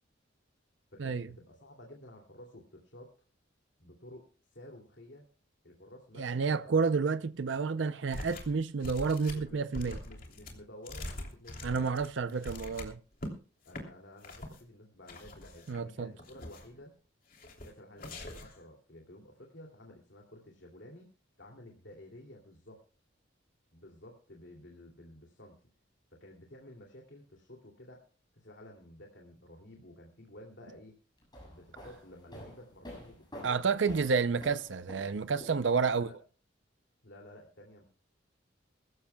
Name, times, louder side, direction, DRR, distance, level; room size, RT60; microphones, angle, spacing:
voice 1, 0.9-3.1 3.8-5.2 5.6-6.8 9.2-11.9 13.6-16.9 17.6-21.1 21.4-22.8 23.7-25.6 26.1-28.0 28.3-30.9 31.5-33.6 35.9-36.1 37.0-37.8, left 1 dB, 65° left, 2.7 m, -52 dB
voice 2, 6.2-10.0 11.6-13.0 15.7-16.1 33.4-36.1, right 5 dB, 70° right, 0.6 m, -30 dB
sound 1, 8.1-8.6 8.8-13.3 13.7-13.8 14.2-14.6 15.1-15.8 16.2-16.8 17.3-17.7 18.0-18.6, left 1 dB, 45° left, 3.1 m, -43 dB
sound 2, 31.2-36.0, equal, 20° left, 7.5 m, -49 dB
22.5 x 14.0 x 2.3 m
head